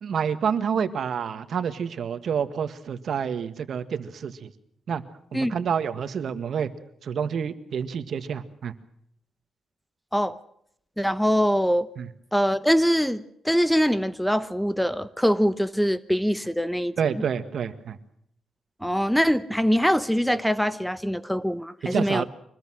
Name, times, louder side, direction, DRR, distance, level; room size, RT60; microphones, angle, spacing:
voice 1, 0.0-4.5 4.9-5.0 5.3-6.7 7.0-8.7 12.0-12.1 17.0-18.0 21.9-22.2, right 7 dB, 65° right, 11 dB, 1.8 m, -28 dB
voice 2, 11.0-11.9 12.3-17.2 18.8-22.2, equal, ahead, 15 dB, 1.0 m, -23 dB
25.0 x 20.0 x 6.4 m, 0.71 s
cardioid pair, 100°, 0 cm